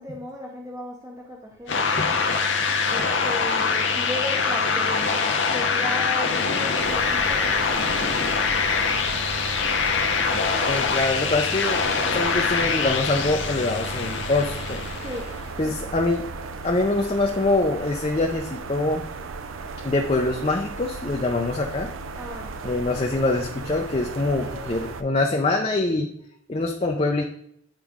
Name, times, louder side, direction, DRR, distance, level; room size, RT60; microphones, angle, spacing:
voice 1, 0.0-1.9 2.9-10.1 14.9-15.3 15.6-15.8 22.2-22.6 24.4-24.7, left 1 dB, 15° right, 0 dB, 0.7 m, -37 dB
sound 1, 1.7-15.4, left 5 dB, 65° left, 0.9 m, -24 dB
sound 2, 6.8-25.0, right 4 dB, 80° right, 0.5 m, -36 dB
voice 2, 10.7-11.8 12.1-14.8 15.6-16.3 16.6-19.0 19.8-21.9 22.6-26.1 26.5-27.2, left 2 dB, 30° left, 2 dB, 0.5 m, -24 dB
8.9 x 4.9 x 3.6 m, 0.71 s
head